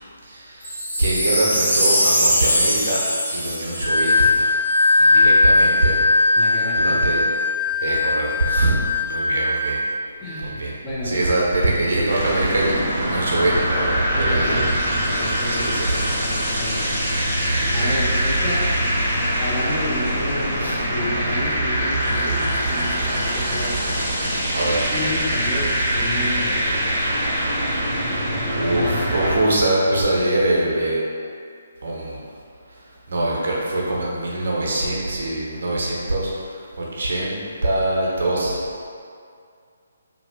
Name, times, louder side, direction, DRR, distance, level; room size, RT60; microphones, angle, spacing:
voice 1, 0.2-3.0 3.3-4.5 5.0-6.0 6.8-7.2 7.8-9.8 10.4-10.7 11.0-14.6 15.5-15.9 17.5-17.9 20.6-20.8 21.2-21.4 24.5-24.8 28.1-28.2 28.5-31.1 31.8-32.2 33.1-38.6, right 1 dB, 55° right, -4 dB, 0.6 m, -23 dB
Wind chime, 0.6-5.0 5.5-5.6, equal, 85° left, 1.4 m, -22 dB
Wind instrument woodwind instrument, 3.8-10.0, left 2 dB, 55° left, 1.0 m, -19 dB
voice 2, 6.4-7.0 10.2-11.2 14.1-16.9 17.7-18.6 19.4-23.9 24.9-26.9 28.7-29.0 29.3-29.6, left 1 dB, 15° left, -9 dB, 0.6 m, -31 dB
sound 1, 12.1-29.4, equal, 15° right, 0.8 m, -23 dB
2.8 x 2.3 x 3.4 m, 2.3 s
figure-of-eight pair, 140°, 0 cm